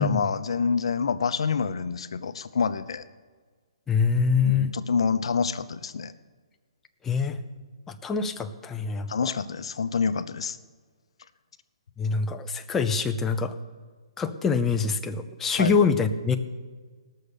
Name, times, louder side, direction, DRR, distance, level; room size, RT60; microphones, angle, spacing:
voice 1, 0.0-3.0 4.4-6.1 9.1-10.6 15.6-15.8, left 5 dB, 70° left, 11 dB, 0.8 m, -27 dB
voice 2, 3.9-4.7 7.0-7.4 7.9-9.3 12.0-13.6 14.2-16.4, left 5 dB, 10° left, 7 dB, 0.6 m, -25 dB
18.5 x 6.5 x 6.8 m, 1.5 s
hypercardioid pair, 150°, 3 cm